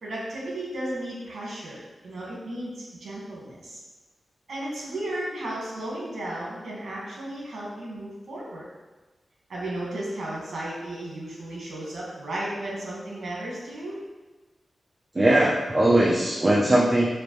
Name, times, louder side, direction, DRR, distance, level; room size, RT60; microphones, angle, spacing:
voice 1, 0.0-3.8 4.5-8.7 9.5-14.0, right 1 dB, 80° right, -5 dB, 1.5 m, -34 dB
voice 2, 15.1-17.1, right 1 dB, 25° right, -5 dB, 0.6 m, -20 dB
5.0 x 2.6 x 3.1 m, 1.2 s
wide cardioid pair, 80°, 0 cm